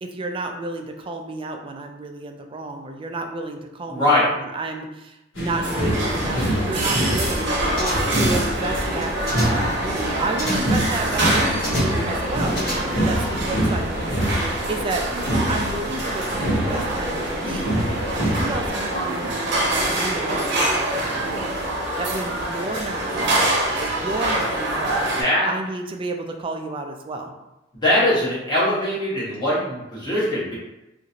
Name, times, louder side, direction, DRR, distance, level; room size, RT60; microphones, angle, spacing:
voice 1, 0.0-7.7 8.1-14.0 14.7-15.0 15.5-17.8 18.1-21.5 22.0-27.3, right 2 dB, 25° right, 3 dB, 0.3 m, -31 dB
voice 2, 3.9-4.3 23.1-23.6 25.2-25.5 27.7-30.5, left 1 dB, 25° left, -9 dB, 1.2 m, -22 dB
sound 1, 5.4-18.7, equal, 85° left, 1.3 m, -26 dB
sound 2, 5.6-25.2, right 1 dB, 60° right, 0.7 m, -25 dB
sound 3, 7.8-8.3 8.9-9.7 10.4-10.8 11.6-12.1 12.5-13.2 13.5-13.6, equal, 55° left, 1.2 m, -32 dB
2.9 x 2.5 x 2.7 m, 0.94 s
head